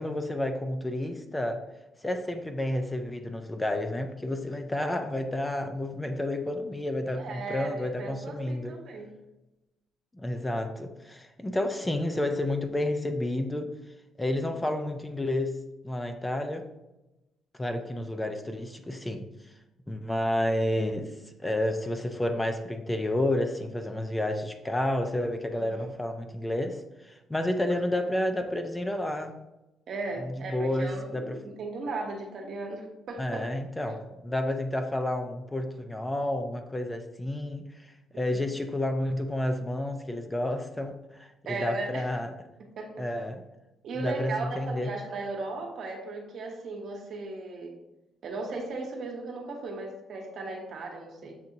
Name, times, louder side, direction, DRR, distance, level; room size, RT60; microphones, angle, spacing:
voice 1, 0.0-1.6 2.0-8.7 10.1-13.7 14.2-15.6 15.8-16.7 17.6-19.3 19.9-21.1 21.4-29.4 30.2-31.4 33.2-41.3 41.6-42.3 43.0-43.4 44.0-44.9, left 1 dB, 15° left, 6 dB, 0.5 m, -30 dB
voice 2, 7.2-9.1 25.5-25.9 29.9-33.4 33.9-34.0 38.1-38.4 41.4-42.1 42.8-43.1 43.8-47.8 48.2-51.4, right 3 dB, 65° right, 1 dB, 1.0 m, -37 dB
7.1 x 2.7 x 2.7 m, 0.98 s
cardioid pair, 90°, 0 cm